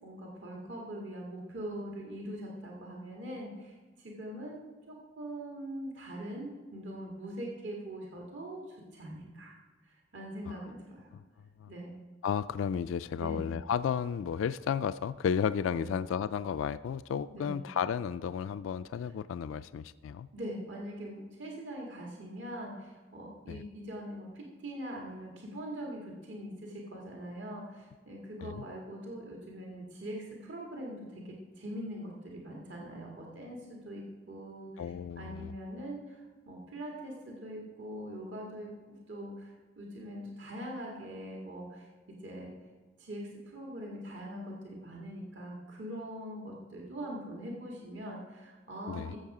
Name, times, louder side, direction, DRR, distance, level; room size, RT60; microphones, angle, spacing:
voice 1, 0.0-4.6 4.9-9.5 9.8-11.1 11.7-12.0 13.2-13.6 15.8-15.9 17.3-17.6 19.4-19.5 20.3-42.5 43.0-49.2, right 1 dB, 70° right, -2 dB, 2.0 m, -42 dB
voice 2, 12.2-20.3 23.5-23.6 28.4-28.6 34.8-35.5 48.9-49.2, left 7 dB, 85° left, 14 dB, 0.3 m, -33 dB
15.0 x 7.2 x 4.9 m, 1.3 s
head